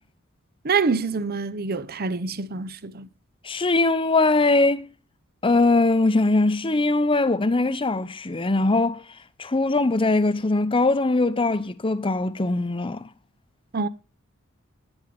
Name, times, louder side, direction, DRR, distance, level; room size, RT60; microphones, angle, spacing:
voice 1, 0.6-3.1 13.7-13.9, right 4 dB, 45° right, 0.7 m, -26 dB
voice 2, 3.4-4.9 5.4-9.0 9.4-13.1, left 2 dB, 25° left, 0.7 m, -21 dB
10.5 x 10.5 x 5.1 m
head